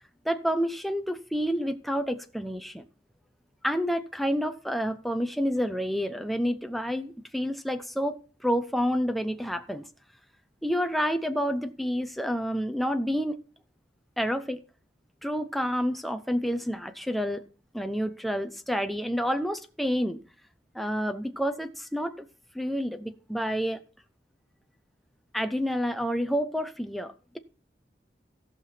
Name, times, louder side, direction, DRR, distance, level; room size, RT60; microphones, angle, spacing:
voice 1, 0.2-2.8 3.6-9.9 10.6-13.4 14.2-14.6 15.2-17.4 17.7-20.2 20.7-22.2 22.5-23.8 25.3-27.4, equal, ahead, 0.6 m, -29 dB
16.5 x 5.8 x 4.2 m
head